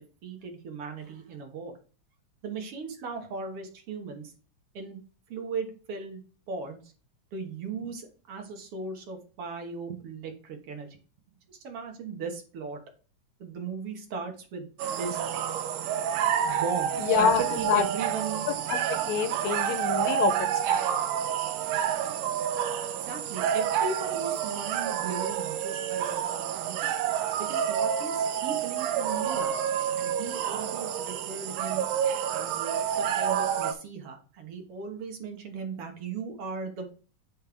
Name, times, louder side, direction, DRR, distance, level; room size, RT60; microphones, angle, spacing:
voice 1, 0.2-1.8 2.4-4.3 4.7-5.0 5.3-6.9 7.3-11.0 11.5-12.8 13.4-14.7 15.0-15.2 16.4-18.5 23.0-26.9 27.4-29.5 29.9-31.8 32.3-36.9, right 4 dB, 60° right, 3 dB, 1.7 m, -37 dB
sound 1, 14.8-33.7, right 9 dB, 80° right, 2.2 m, -29 dB
voice 2, 17.0-17.8 18.7-20.3 20.7-21.0, left 8 dB, 75° left, 9 dB, 1.8 m, -27 dB
9.3 x 4.3 x 3.5 m, 0.38 s
omnidirectional pair, 3.7 m